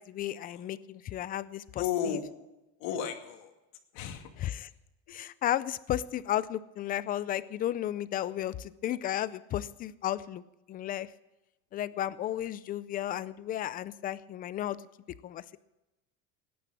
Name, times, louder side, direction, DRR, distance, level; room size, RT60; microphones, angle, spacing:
voice 1, 0.0-2.2 4.4-4.7 5.1-10.4 10.7-11.1 11.7-14.8 15.2-15.6, left 12 dB, 25° left, 17 dB, 0.4 m, -33 dB
voice 2, 1.8-2.2 2.8-3.5 3.9-4.4 5.1-5.2, left 8 dB, 70° left, 5 dB, 2.3 m, -34 dB
19.0 x 10.5 x 6.2 m, 1.0 s
cardioid pair, 165°, 34 cm